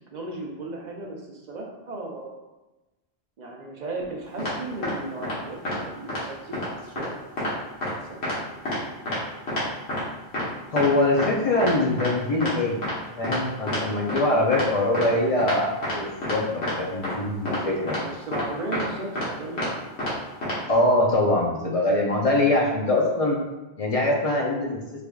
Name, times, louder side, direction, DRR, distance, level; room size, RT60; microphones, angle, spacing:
voice 1, 0.1-2.4 3.4-7.3 7.8-8.4 17.9-19.8, right 2 dB, 55° right, 0 dB, 0.6 m, -36 dB
sound 1, 4.4-4.5 4.8-4.9 5.2-5.3 5.7-5.8 6.1-6.2 6.5-6.7 7.0-7.1 7.4-7.5 7.8-7.9 8.2-8.4 8.7-8.8 9.1-9.2 9.5-9.6 9.9-10.0 10.3-10.4 10.8-10.9 11.2-11.3 11.6-11.7 12.0-12.1 12.4-12.5 12.8-12.9 13.2-13.4 13.7-13.8 14.1-14.2 14.5-14.7 14.9-15.1 15.4-15.5 15.8-16.0 16.2-16.4 16.6-16.7 17.0-17.1 17.5-17.6 17.9-18.0 18.3-18.4 18.7-18.8 19.2-19.3 19.6-19.7 20.0-20.1 20.4-20.6, left 1 dB, 90° left, 1.4 m, -28 dB
voice 2, 10.7-12.8 13.2-18.0 20.7-23.4 23.8-24.8, left 2 dB, 50° left, -1 dB, 0.5 m, -23 dB
3.5 x 3.2 x 2.3 m, 1.1 s
omnidirectional pair, 1.1 m